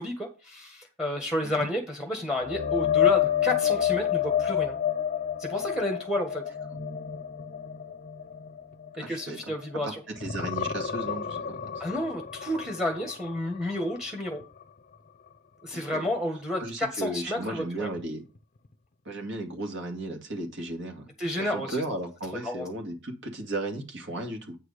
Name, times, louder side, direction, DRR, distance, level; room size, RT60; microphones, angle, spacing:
voice 1, 0.0-4.7 5.4-6.4 9.1-10.0 11.8-14.4 15.6-17.9 21.2-21.8 22.3-22.6, left 1 dB, 5° right, 2 dB, 1.5 m, -31 dB
sound 1, 2.4-9.8 10.2-14.0 14.4-14.6 18.0-18.1, left 10 dB, 40° left, 0.6 m, -29 dB
voice 2, 9.0-9.4 9.8-11.8 15.7-16.1 16.6-18.2 19.1-21.1 21.4-24.6, right 2 dB, 60° right, 3 dB, 2.2 m, -35 dB
8.9 x 4.9 x 6.5 m, 0.32 s
head